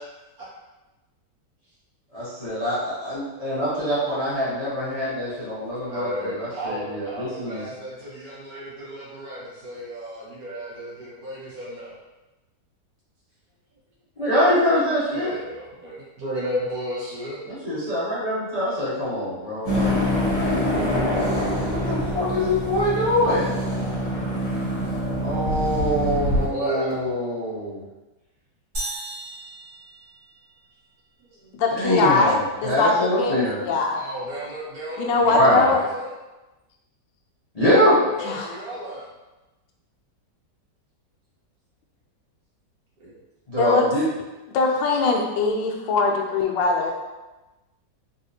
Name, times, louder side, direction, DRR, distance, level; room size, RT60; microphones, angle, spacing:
voice 1, 2.1-7.6 14.2-15.4 17.5-20.0 21.7-23.6 25.2-27.8 31.7-33.6 35.3-35.7 37.5-37.9 43.5-44.0, equal, 35° left, -11 dB, 0.6 m, -24 dB
voice 2, 5.9-11.9 15.1-17.4 26.5-27.1 31.2-31.6 33.9-36.1 37.9-39.1 43.0-43.1, equal, 60° right, -7 dB, 1.5 m, -34 dB
sound 1, 19.7-26.5, equal, 65° left, 1.4 m, -25 dB
sound 2, 28.7-30.7, right 1 dB, 40° right, 1.5 m, -35 dB
voice 3, 31.6-34.0 35.0-35.8 38.2-38.5 43.6-43.8 44.5-46.9, left 4 dB, 85° left, 1 dB, 1.3 m, -22 dB
4.0 x 2.4 x 2.7 m, 1.1 s
omnidirectional pair, 1.9 m